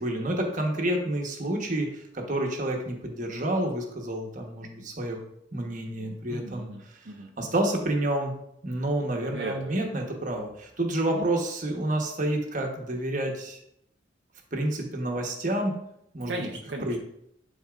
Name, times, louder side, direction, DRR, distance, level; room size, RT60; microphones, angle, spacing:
voice 1, 0.0-5.2 5.5-6.7 7.4-8.3 8.6-13.6 14.5-15.8 16.1-16.4 16.8-17.0, right 1 dB, 45° right, 1 dB, 1.2 m, -29 dB
voice 2, 6.3-7.3 9.3-9.8 11.1-11.3 16.3-17.0, right 1 dB, 70° right, 0 dB, 0.7 m, -37 dB
10.5 x 4.1 x 2.5 m, 0.75 s
head